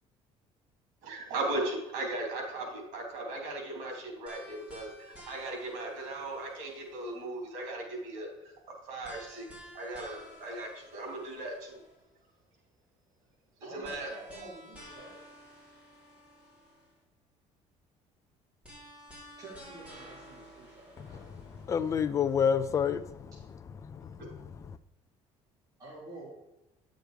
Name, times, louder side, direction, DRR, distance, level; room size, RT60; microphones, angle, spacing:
voice 1, 1.0-8.3 8.8-9.4 9.7-11.8 13.7-14.1 24.2-24.3, right 2 dB, 90° right, 3.0 m, -37 dB
sound 1, 4.3-7.4 9.0-12.0 13.8-17.0 18.6-22.1, equal, 10° right, 3.2 m, -52 dB
voice 2, 13.6-15.1 19.4-21.2 25.8-26.3, right 2 dB, 30° right, 3.4 m, -48 dB
voice 3, 21.7-23.3 23.8-24.2 24.6-24.7, left 7 dB, 25° left, 0.5 m, -28 dB
10.5 x 6.4 x 5.0 m
cardioid pair, 160°, 12 cm